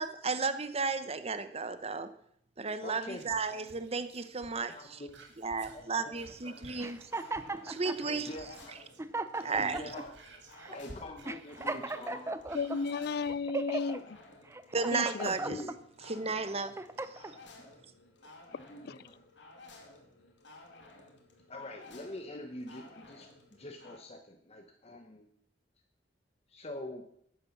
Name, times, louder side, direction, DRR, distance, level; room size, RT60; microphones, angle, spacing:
voice 1, 0.0-2.1 2.6-4.7 5.4-7.1 7.6-8.3 9.4-9.8 14.7-15.6 16.1-16.7 17.1-17.2, right 4 dB, 35° right, 1.0 m, -33 dB
voice 2, 2.8-3.7 4.4-5.2 5.7-6.6 8.0-8.7 9.4-10.4 10.7-12.6 12.9-13.1 15.2-15.7 17.5-17.9 18.2-19.3 21.5-25.3 26.5-27.1, left 1 dB, 35° left, 1.2 m, -46 dB
Whispering, 3.1-9.1 9.4-13.4 13.8-13.9, right 2 dB, 75° right, 2.2 m, -55 dB
sound 1, 6.5-24.0, left 2 dB, 85° left, 2.5 m, -55 dB
sound 2, 6.8-8.0 8.6-8.7 9.0-10.0 10.6-10.8 11.2-12.8 13.3-14.0 14.5-15.8 16.3-17.3, right 2 dB, 15° right, 0.6 m, -37 dB
voice 3, 12.5-14.2 14.9-15.4 18.9-19.0, left 5 dB, 60° left, 0.4 m, -34 dB
11.0 x 9.4 x 7.2 m
head